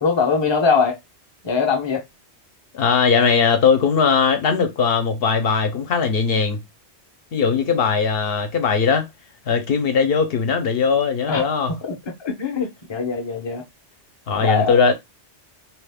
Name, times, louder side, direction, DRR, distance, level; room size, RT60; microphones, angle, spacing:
voice 1, 0.0-1.0 1.4-2.0 11.3-13.6 14.4-14.8, left 5 dB, 30° left, 0.6 m, -22 dB
voice 2, 2.7-6.6 7.3-9.1 9.5-11.7 14.3-14.9, left 5 dB, 65° left, 0.8 m, -19 dB
2.7 x 2.4 x 3.4 m
omnidirectional pair, 1.1 m